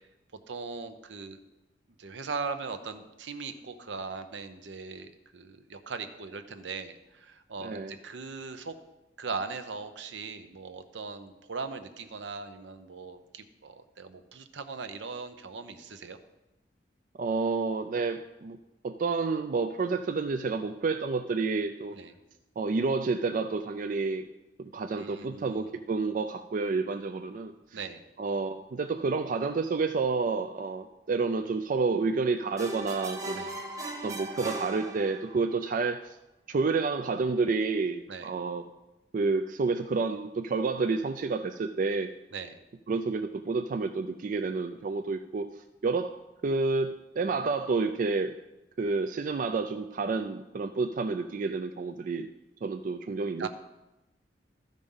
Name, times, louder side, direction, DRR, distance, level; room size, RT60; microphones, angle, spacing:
voice 1, 0.5-1.4 2.0-8.7 9.2-16.2 21.9-22.1 25.0-25.7 27.7-28.0 33.3-33.5 38.1-38.3 42.3-42.6 53.4-53.5, right 4 dB, 80° right, 9 dB, 0.7 m, -39 dB
voice 2, 7.6-7.9 17.2-18.6 18.8-22.0 22.6-24.3 24.6-27.5 28.2-33.4 34.0-36.1 36.5-38.6 39.1-42.1 42.9-45.5 45.8-46.2 46.4-48.3 48.8-52.3 52.6-53.5, right 4 dB, 45° right, 8 dB, 0.4 m, -29 dB
sound 1, 32.6-35.5, right 2 dB, 20° right, 0.8 m, -38 dB
13.0 x 5.2 x 5.4 m, 0.99 s
head